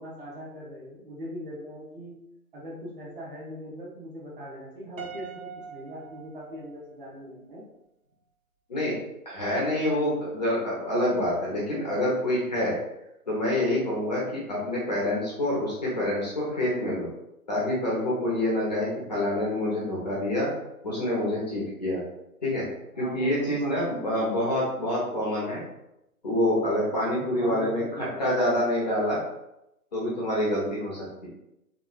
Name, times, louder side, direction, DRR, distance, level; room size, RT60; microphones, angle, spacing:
voice 1, 0.0-2.2 2.5-7.6 22.9-24.2 27.1-28.2, equal, 35° right, -6 dB, 1.0 m, -41 dB
Piano, 5.0-7.2, right 6 dB, 60° right, 0.6 m, -43 dB
voice 2, 9.3-12.7 13.3-17.1 17.5-20.5 20.8-22.0 22.4-22.7 23.0-25.6 26.2-29.2 29.9-31.3, left 1 dB, 30° left, -6 dB, 0.6 m, -27 dB
3.1 x 2.4 x 2.3 m, 0.86 s
figure-of-eight pair, 130°, 46 cm